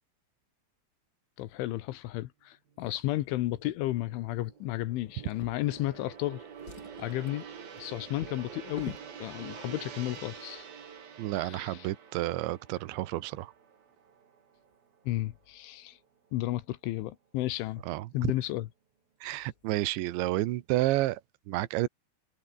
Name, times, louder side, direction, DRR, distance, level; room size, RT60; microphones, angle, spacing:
voice 1, 1.4-6.4 7.0-7.4 7.8-10.7 11.3-11.9 15.1-16.0 16.3-17.8 18.1-18.7 19.2-19.5, left 16 dB, 85° left, 3.6 m, -33 dB
Gong, 2.8-15.2 15.6-15.8, right 7 dB, 55° right, 5.2 m, -48 dB
Drawer open or close, 5.2-6.2 6.5-9.1 10.0-10.2 10.5-10.6, left 4 dB, 25° left, 3.5 m, -47 dB
voice 2, 11.2-13.5 17.8-18.3 19.2-21.2 21.5-21.9, right 17 dB, 80° right, 3.4 m, -30 dB
omnidirectional pair, 5.4 m